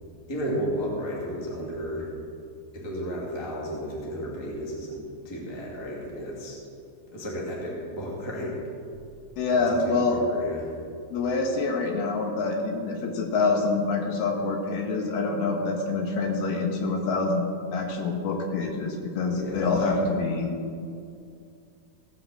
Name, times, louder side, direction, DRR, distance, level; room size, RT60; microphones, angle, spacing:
voice 1, 0.3-2.1 2.7-5.0 5.2-6.6 7.1-8.6 9.5-10.7 19.3-20.1, equal, 10° left, -4 dB, 1.4 m, -33 dB
voice 2, 9.4-10.2 11.1-20.5, left 3 dB, 70° left, 2 dB, 3.0 m, -26 dB
17.0 x 5.9 x 7.4 m, 2.4 s
omnidirectional pair, 4.8 m